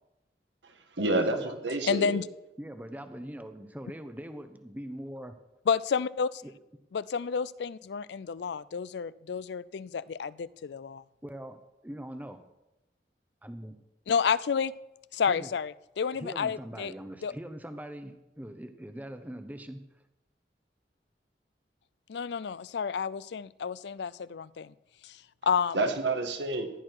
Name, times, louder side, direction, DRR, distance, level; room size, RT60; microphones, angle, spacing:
voice 1, 0.6-2.2 25.7-26.7, right 2 dB, 85° right, 6 dB, 1.7 m, -29 dB
voice 2, 1.8-2.2 5.7-6.4 6.9-11.0 14.1-14.7 15.1-16.9 17.2-17.3 22.1-24.7 25.0-25.8, left 6 dB, 75° left, 19 dB, 0.4 m, -30 dB
voice 3, 2.6-5.3 6.4-6.5 11.2-12.4 13.4-13.8 15.3-15.5 16.1-19.8, equal, 10° right, 9 dB, 0.8 m, -42 dB
15.0 x 11.0 x 4.7 m, 0.95 s
head